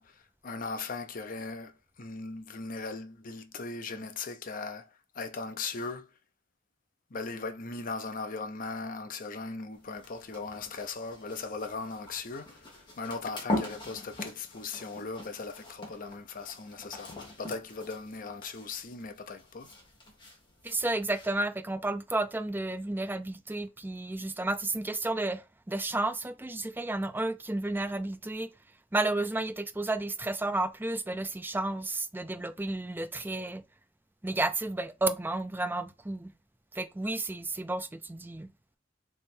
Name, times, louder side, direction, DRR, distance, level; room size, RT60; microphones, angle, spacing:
voice 1, 0.0-4.9 5.1-6.1 7.1-19.7, left 4 dB, 45° left, 0.7 m, -38 dB
sound 1, 9.7-21.3, left 1 dB, 25° left, 1.4 m, -42 dB
voice 2, 20.6-28.5 28.9-33.6 34.2-36.3 36.7-38.5, right 2 dB, 10° right, 0.4 m, -32 dB
3.4 x 3.1 x 4.4 m
head